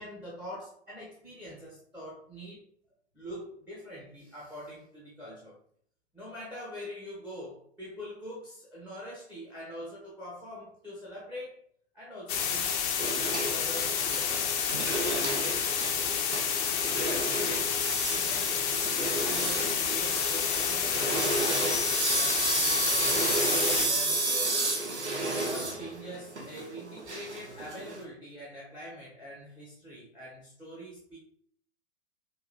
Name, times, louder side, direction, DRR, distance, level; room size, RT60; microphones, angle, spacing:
voice 1, 0.0-2.6 3.1-5.5 6.1-11.6 11.9-12.7 13.0-14.4 15.0-15.5 17.0-17.8 18.1-18.9 19.2-23.3 23.7-24.7 25.3-31.2, equal, 5° right, -6 dB, 0.9 m, -44 dB
sound 1, 12.3-23.9, left 7 dB, 35° left, 0.7 m, -29 dB
sound 2, 13.0-28.0, right 2 dB, 80° right, 0.9 m, -31 dB
4.8 x 2.6 x 2.6 m, 0.62 s
figure-of-eight pair, 110°, 34 cm